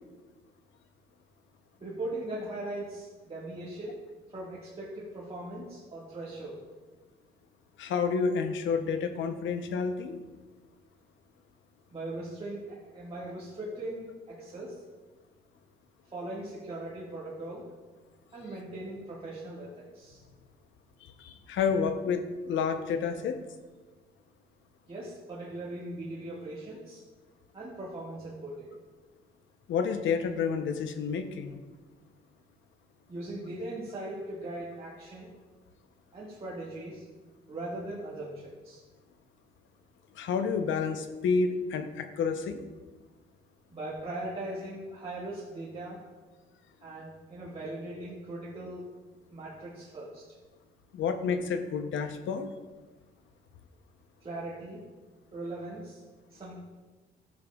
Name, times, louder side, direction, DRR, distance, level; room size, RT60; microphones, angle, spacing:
voice 1, 1.8-4.0 4.3-6.6 11.9-14.8 16.1-17.7 18.3-20.2 24.9-27.0 27.5-28.7 33.1-35.3 36.1-37.0 37.5-38.8 43.7-46.0 46.8-48.9 49.3-50.3 54.2-54.8 55.3-56.0 56.3-56.6, right 1 dB, 30° right, -7 dB, 1.7 m, -39 dB
voice 2, 7.8-10.2 21.0-23.4 29.7-31.6 40.1-42.7 50.9-52.5, left 5 dB, 75° left, 9 dB, 0.7 m, -30 dB
12.0 x 6.8 x 2.3 m, 1.3 s
cardioid pair, 90°, 20 cm